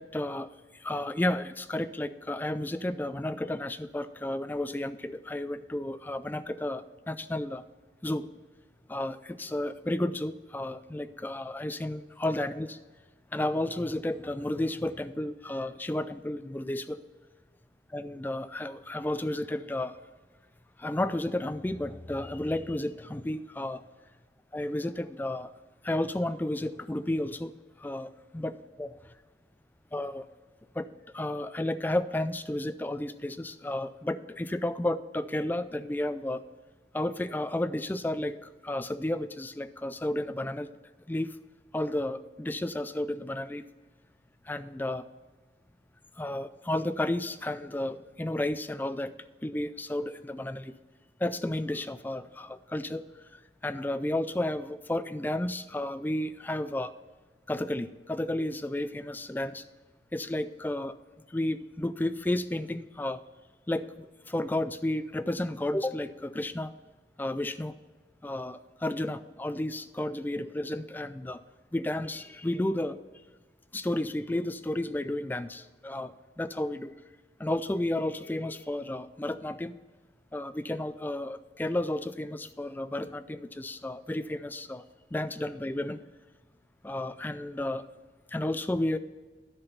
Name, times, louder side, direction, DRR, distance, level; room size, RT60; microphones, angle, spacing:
voice 1, 0.0-7.6 8.0-8.3 8.9-12.8 13.3-17.0 17.9-20.0 20.8-23.8 24.5-25.5 25.8-27.5 27.8-28.9 29.9-30.3 30.8-30.9 31.1-36.4 36.9-40.7 41.1-41.4 41.7-43.6 44.5-45.0 46.2-49.1 49.4-50.7 51.2-53.1 53.3-56.9 57.5-59.6 60.1-61.0 61.3-63.2 63.7-66.7 67.2-67.7 68.2-71.4 71.7-73.0 73.7-76.9 77.4-79.7 80.3-84.8 85.1-86.0 86.8-87.8 88.3-89.0, left 1 dB, 10° left, 12 dB, 0.3 m, -32 dB
10.0 x 5.9 x 5.6 m, 1.3 s
head